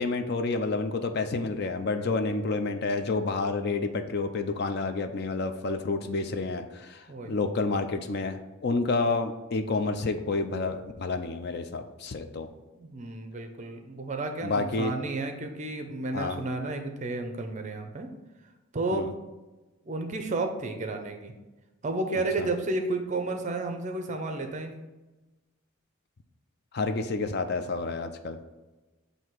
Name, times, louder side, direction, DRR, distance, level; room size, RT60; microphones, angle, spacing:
voice 1, 0.0-12.5 14.4-14.9 16.1-16.4 18.9-19.1 22.4-22.5 26.7-28.4, left 3 dB, 50° left, 8 dB, 0.4 m, -29 dB
voice 2, 12.7-18.1 18.7-19.1 19.9-21.3 21.8-24.8, right 2 dB, 35° right, 5 dB, 0.5 m, -32 dB
7.7 x 2.7 x 4.4 m, 1.1 s
head